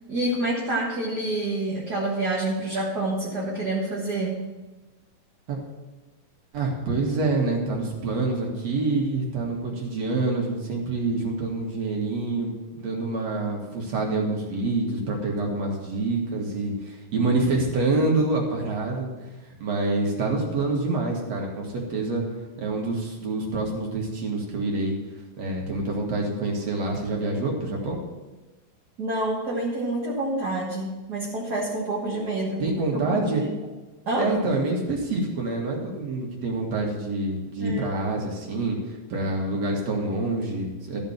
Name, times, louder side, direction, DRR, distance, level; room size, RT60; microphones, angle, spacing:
voice 1, 0.1-4.4 29.0-32.6 32.9-33.5 34.0-34.4 37.6-37.9, right 2 dB, 40° right, -6 dB, 1.5 m, -27 dB
voice 2, 6.5-19.3 19.6-22.2 22.6-24.9 25.4-28.0 32.6-33.4 34.2-38.8 39.1-41.0, right 2 dB, 55° right, -1 dB, 2.6 m, -26 dB
13.0 x 5.4 x 7.2 m, 1.2 s
omnidirectional pair, 3.8 m